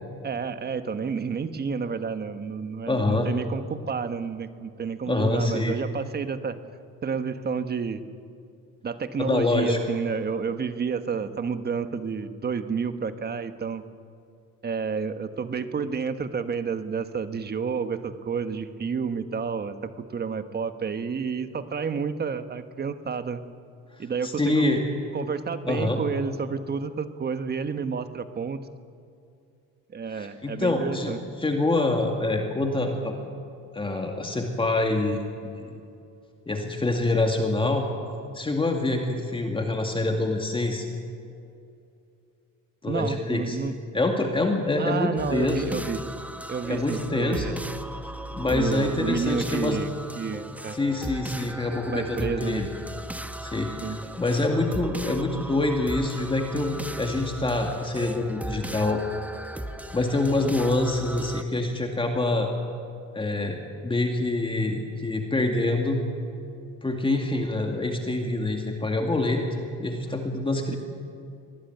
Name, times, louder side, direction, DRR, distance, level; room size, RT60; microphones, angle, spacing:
voice 1, 0.2-6.6 7.0-8.0 8.8-13.8 14.6-23.4 24.0-24.7 25.1-28.6 29.9-31.2 42.9-43.7 44.8-46.1 46.5-47.6 48.5-49.9 50.2-50.8 51.9-52.6 53.8-54.0, right 5 dB, 30° right, 10 dB, 1.3 m, -30 dB
voice 2, 2.9-3.3 5.1-5.8 9.2-9.8 24.2-24.8 25.7-26.0 30.1-31.1 31.4-33.1 33.7-35.2 35.5-35.7 36.5-37.8 38.3-40.9 42.8-43.6 43.9-45.8 46.7-47.5 48.3-49.8 50.7-52.7 53.4-59.0 59.9-62.5 63.1-66.0 66.8-69.4 69.8-70.8, left 2 dB, 15° left, 2 dB, 2.3 m, -26 dB
sound 1, 45.2-61.4, right 1 dB, 5° right, 1.0 m, -37 dB
24.0 x 19.0 x 9.3 m, 2.5 s
cardioid pair, 130°, 32 cm